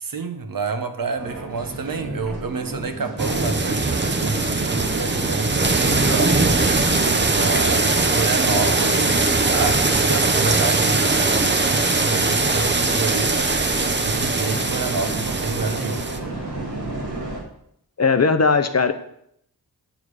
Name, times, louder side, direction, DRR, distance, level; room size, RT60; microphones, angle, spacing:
voice 1, 0.0-6.6 7.3-13.6 14.0-16.1, right 4 dB, 60° right, 1.1 m, -29 dB
sound 1, 1.1-17.4, right 2 dB, 85° right, 3.7 m, -33 dB
sound 2, 3.2-16.2, right 3 dB, 30° right, 0.8 m, -21 dB
voice 2, 18.0-18.9, left 4 dB, 40° left, 0.7 m, -18 dB
9.0 x 7.1 x 4.8 m
wide cardioid pair, 110°, 39 cm